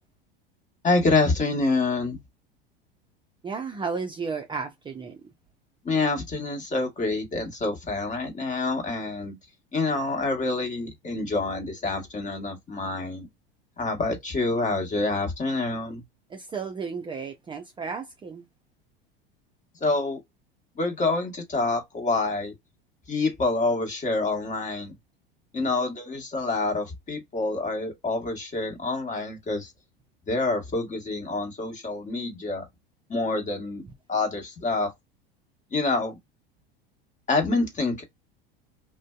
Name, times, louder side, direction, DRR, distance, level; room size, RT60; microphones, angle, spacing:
voice 1, 0.8-2.2 5.8-9.4 9.7-13.3 13.8-16.0 19.8-20.2 20.7-22.5 23.1-24.9 25.5-29.7 30.3-32.7 33.1-33.8 34.1-34.9 35.7-36.2 37.3-38.0, left 3 dB, 25° left, 1.2 m, -27 dB
voice 2, 3.4-5.2 16.3-18.4, right 5 dB, 15° right, 0.4 m, -33 dB
2.5 x 2.1 x 2.3 m
hypercardioid pair, 80°, 29 cm